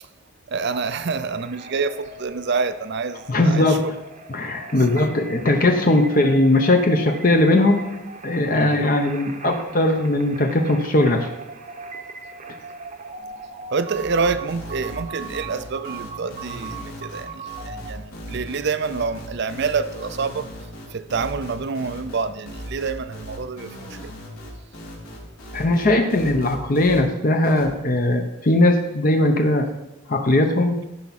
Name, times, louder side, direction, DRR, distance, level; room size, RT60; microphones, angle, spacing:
voice 1, 0.5-3.9 4.9-5.0 8.6-8.8 13.7-20.5 20.9-24.1, right 4 dB, 55° right, 0.5 m, -27 dB
sound 1, 0.7-17.9, right 3 dB, 35° right, 0.8 m, -39 dB
voice 2, 3.3-3.9 4.3-7.9 8.2-11.3 25.5-29.7 30.1-30.8, left 1 dB, 40° left, 0.8 m, -19 dB
sound 2, 13.9-27.0 27.4-27.7, equal, 85° left, 3.3 m, -38 dB
14.5 x 5.8 x 4.2 m
head